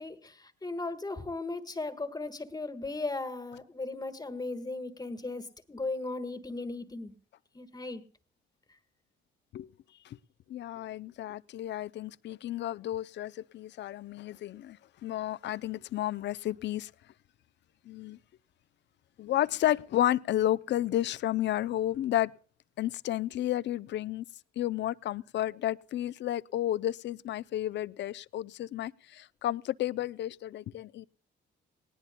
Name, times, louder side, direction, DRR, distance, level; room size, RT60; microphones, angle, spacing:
voice 1, 0.0-7.1 7.5-8.0, left 2 dB, 20° left, 1.5 m, -37 dB
voice 2, 10.5-16.9 17.9-18.2 19.2-22.3 22.8-24.2 24.6-31.1, left 13 dB, 65° left, 0.5 m, -32 dB
19.0 x 18.5 x 2.2 m
cardioid pair, 90°, 20 cm